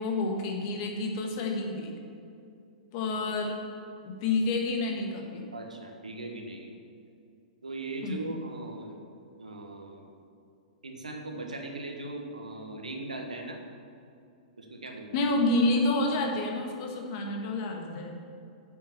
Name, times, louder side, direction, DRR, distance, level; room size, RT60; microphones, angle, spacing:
voice 1, 0.0-1.9 2.9-3.6 4.0-5.5 8.0-8.3 15.1-18.2, left 2 dB, 40° left, 2 dB, 1.6 m, -29 dB
voice 2, 5.5-6.7 7.6-9.0 9.4-10.2 10.8-13.6 14.6-15.2, right 2 dB, 75° right, 2 dB, 1.4 m, -39 dB
8.4 x 7.1 x 6.8 m, 2.6 s
figure-of-eight pair, 105°, 4 cm